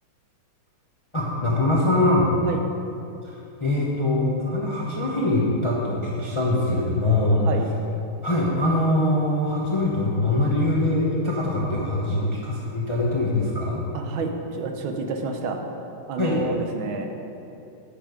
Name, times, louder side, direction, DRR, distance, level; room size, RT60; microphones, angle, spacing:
voice 1, 1.1-2.3 3.2-7.5 8.2-13.8 16.2-16.4, left 1 dB, 25° left, -4 dB, 0.6 m, -23 dB
voice 2, 13.9-15.6 16.1-17.1, right 4 dB, 75° right, 4 dB, 1.5 m, -29 dB
9.8 x 6.4 x 5.0 m, 2.8 s
omnidirectional pair, 2.3 m